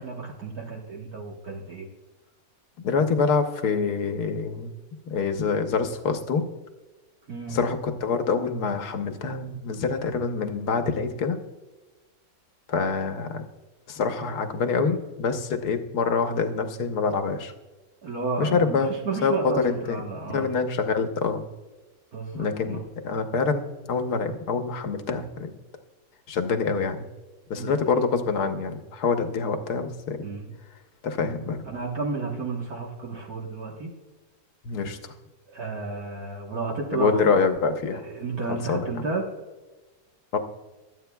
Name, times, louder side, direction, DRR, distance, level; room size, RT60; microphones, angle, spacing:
voice 1, 0.0-1.9 7.3-7.6 18.0-20.5 22.1-22.8 27.5-27.8 30.2-30.5 31.7-33.9 35.5-37.4 37.9-39.3, right 4 dB, 60° right, -1 dB, 1.8 m, -32 dB
voice 2, 2.8-4.7 5.1-6.4 7.5-11.4 12.7-13.4 13.9-17.5 18.4-18.9 19.2-20.1 20.3-21.4 22.4-23.6 23.9-25.5 26.3-27.1 27.5-30.3 31.0-31.6 34.6-35.1 36.9-38.0 38.5-39.0 40.3-40.4, left 5 dB, 65° left, 6 dB, 1.5 m, -26 dB
24.5 x 8.6 x 2.3 m, 1.2 s
omnidirectional pair, 1.8 m